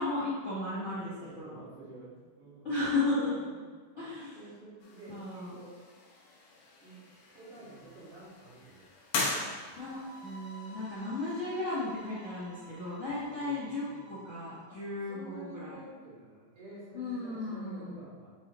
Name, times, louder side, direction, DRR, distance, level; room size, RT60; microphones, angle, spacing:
voice 1, 0.0-1.6 2.6-3.3 4.0-4.5 5.1-5.5 9.8-15.8 16.9-18.1, left 2 dB, 35° left, -11 dB, 1.4 m, -35 dB
voice 2, 0.9-2.7 3.1-3.6 3.9-5.7 6.8-7.0 7.3-8.9 9.3-9.8 13.0-14.1 14.7-18.4, right 2 dB, 75° right, -10 dB, 3.5 m, -50 dB
sound 1, 4.8-13.2, left 3 dB, 75° left, 1.1 m, -41 dB
sound 2, 9.7-14.7, right 1 dB, 45° right, 1.6 m, -52 dB
7.5 x 4.1 x 3.1 m, 1.4 s
omnidirectional pair, 3.5 m